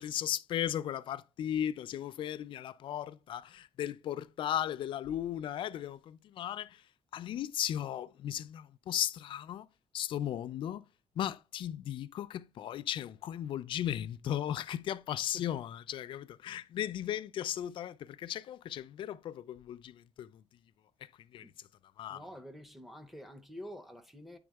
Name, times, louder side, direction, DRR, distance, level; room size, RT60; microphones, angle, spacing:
voice 1, 0.0-6.8 7.1-9.7 9.9-10.8 11.2-20.3 21.3-21.5 22.0-22.2, left 11 dB, 50° left, 0.3 m, -36 dB
voice 2, 22.1-24.4, equal, ahead, 0.6 m, -48 dB
8.6 x 3.5 x 3.4 m
cardioid pair, 170°, 11 cm